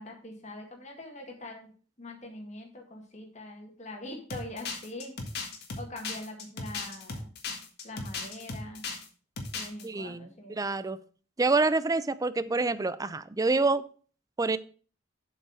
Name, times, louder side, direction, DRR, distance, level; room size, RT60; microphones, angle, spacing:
voice 1, 0.0-1.7 2.0-5.2 5.8-7.2 7.8-8.8 9.5-10.6, left 1 dB, 40° left, 2.0 m, -43 dB
sound 1, 4.3-9.1 9.4-9.8, left 4 dB, 60° left, 1.7 m, -37 dB
voice 2, 9.8-11.0 11.4-13.9 14.4-14.6, right 3 dB, 20° right, 0.4 m, -27 dB
7.4 x 5.4 x 6.3 m
head